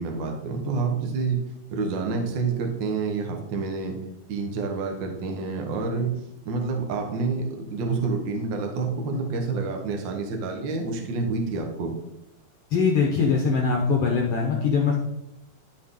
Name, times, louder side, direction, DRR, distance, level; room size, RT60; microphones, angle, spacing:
voice 1, 0.0-1.4 1.7-3.9 4.3-6.1 6.4-11.9, right 4 dB, 75° right, 2 dB, 1.0 m, -28 dB
voice 2, 12.7-15.0, left 5 dB, 70° left, -1 dB, 1.5 m, -22 dB
12.5 x 4.8 x 3.8 m, 0.85 s
omnidirectional pair, 4.2 m